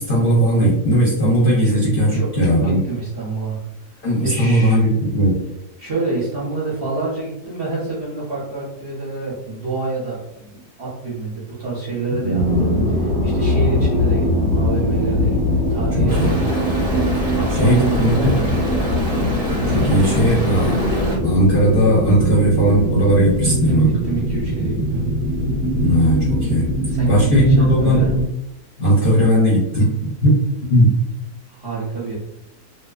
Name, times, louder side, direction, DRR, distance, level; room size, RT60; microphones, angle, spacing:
voice 1, 0.0-2.8 4.0-5.4 12.2-12.6 16.0-16.4 17.5-18.3 19.7-20.9 21.2-23.9 25.8-26.7 27.1-28.0 28.8-30.4 30.7-30.9, equal, 50° left, -7 dB, 0.7 m, -17 dB
voice 2, 2.1-3.6 3.9-4.8 5.8-12.8 13.2-19.0 23.4-25.0 26.9-28.1 31.5-32.2, right 3 dB, 50° right, -7 dB, 0.7 m, -27 dB
sound 1, 12.4-28.3, left 1 dB, 10° right, 1.0 m, -21 dB
Stream, 16.1-21.2, left 1 dB, 80° right, 0.3 m, -27 dB
2.7 x 2.1 x 2.3 m, 0.84 s
omnidirectional pair, 1.6 m